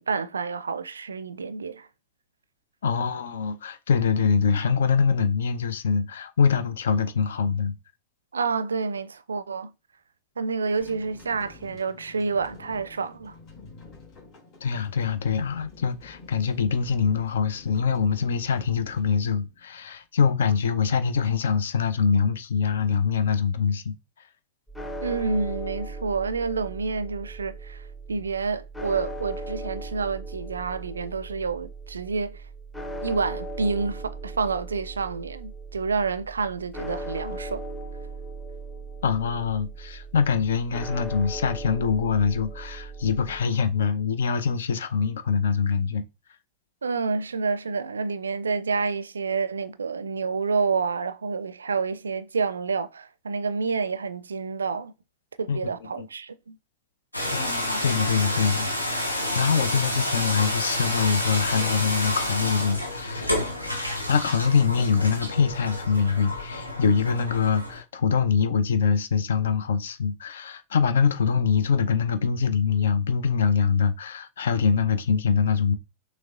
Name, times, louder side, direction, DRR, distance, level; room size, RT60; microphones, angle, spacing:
voice 1, 0.0-1.9 8.3-9.7 10.4-13.3 25.0-27.8 28.1-32.4 33.0-37.6 46.8-54.9 55.4-56.6, right 4 dB, 75° right, 0.4 m, -28 dB
voice 2, 2.8-7.7 14.6-23.9 39.0-46.0 55.5-55.6 56.0-56.1 57.3-63.4 64.1-75.7, left 6 dB, 65° left, 0.6 m, -24 dB
sound 1, 10.6-20.0, left 4 dB, 40° left, 2.8 m, -49 dB
sound 2, 24.7-43.4, right 2 dB, 10° left, 0.8 m, -38 dB
sound 3, 57.1-67.8, left 1 dB, 85° left, 1.1 m, -29 dB
6.2 x 3.3 x 2.4 m
figure-of-eight pair, 90°, 0 cm